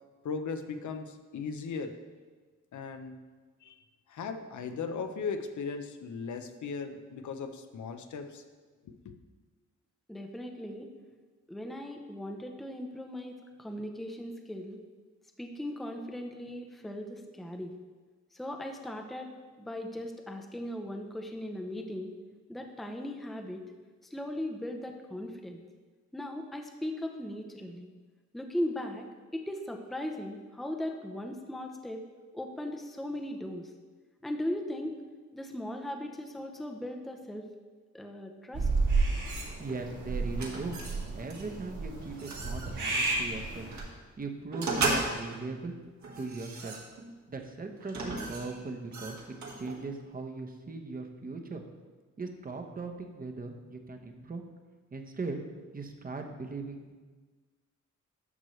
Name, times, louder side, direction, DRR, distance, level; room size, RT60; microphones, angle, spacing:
voice 1, 0.2-2.0 2.7-3.2 3.6-3.8 4.1-8.4 8.8-9.1, left 5 dB, 75° left, 8 dB, 0.7 m, -37 dB
voice 2, 10.1-10.9 11.5-14.8 15.4-17.7 18.3-22.1 22.5-23.6 24.0-25.6 26.1-27.9 28.3-29.1 29.3-32.0 32.3-33.7 34.2-35.0 35.3-37.5 37.9-38.7, left 1 dB, ahead, 3 dB, 0.6 m, -38 dB
sound 1, 38.5-43.8, right 3 dB, 85° right, 2.2 m, -31 dB
sound 2, 39.3-39.8 40.4-41.0 41.3-41.5 42.0-43.1 43.7-43.9 44.5-45.4 46.0-47.2 47.8-49.9, right 2 dB, 70° right, 1.7 m, -36 dB
voice 3, 39.6-40.8 41.1-43.7 44.2-45.7 46.2-46.8 47.3-51.6 52.2-54.4 54.9-55.4 55.7-57.0, right 3 dB, 30° right, 4 dB, 0.9 m, -39 dB
11.0 x 6.2 x 3.2 m, 1.4 s
cardioid pair, 105°, 30 cm